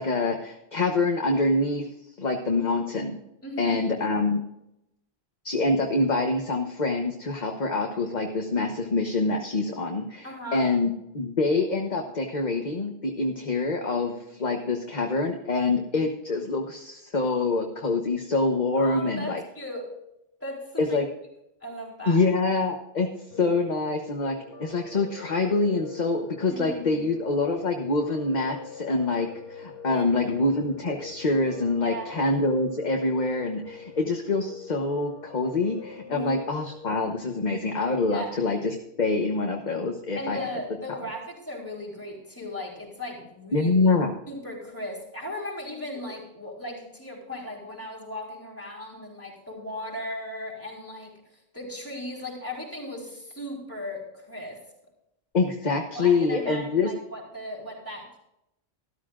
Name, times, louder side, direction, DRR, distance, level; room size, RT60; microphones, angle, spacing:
voice 1, 0.0-1.9 2.2-3.2 3.6-4.4 5.4-19.4 20.8-21.1 22.1-23.1 23.4-40.4 43.5-44.1 55.3-56.9, left 3 dB, 45° left, 2 dB, 1.2 m, -25 dB
voice 2, 3.4-3.8 10.2-10.7 18.8-19.9 20.4-21.0 21.6-22.2 26.5-27.1 29.9-30.3 31.8-32.3 36.1-36.4 38.1-38.3 40.1-43.7 44.3-51.1 51.5-54.6 55.9-58.2, left 1 dB, 15° left, -3 dB, 4.1 m, -37 dB
Piano, 23.3-37.0, left 5 dB, 65° left, 1.3 m, -44 dB
13.5 x 13.0 x 2.5 m, 0.83 s
omnidirectional pair, 1.0 m